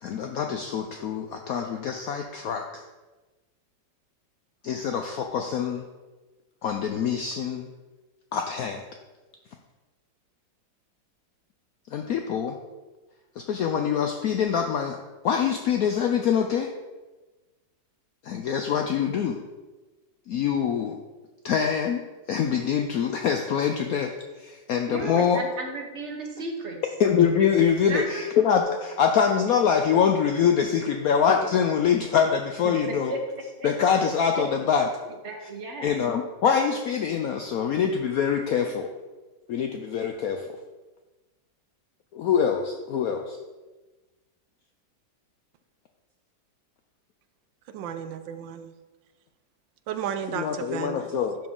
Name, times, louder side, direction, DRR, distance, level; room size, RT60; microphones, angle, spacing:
voice 1, 0.0-2.8 4.6-5.8 6.6-7.7 8.3-8.8 11.9-12.6 13.4-15.0 15.2-16.7 18.2-19.4 20.3-21.0 21.4-25.4 27.0-33.1 33.6-34.9 35.8-38.9 39.5-40.5 42.1-43.4 50.3-51.4, left 7 dB, 75° left, 4 dB, 0.8 m, -24 dB
voice 2, 24.9-26.8 27.9-28.3 32.6-33.7 34.4-34.5 35.1-35.9, right 2 dB, 45° right, 2 dB, 1.2 m, -34 dB
voice 3, 47.7-48.7 49.9-51.1, right 8 dB, 80° right, 9 dB, 1.3 m, -33 dB
11.5 x 4.3 x 3.7 m, 1.2 s
omnidirectional pair, 2.0 m